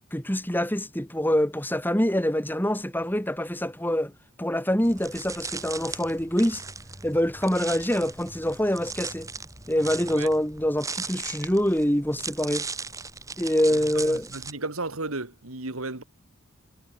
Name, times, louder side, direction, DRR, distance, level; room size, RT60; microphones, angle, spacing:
voice 1, 0.1-4.1 4.4-6.6 7.0-9.3 9.7-12.7 13.4-14.3, equal, 10° left, 3.5 m, -25 dB
sound 1, 4.8-14.5, right 4 dB, 15° right, 3.5 m, -38 dB
voice 2, 13.9-16.0, right 3 dB, 80° right, 2.7 m, -34 dB
head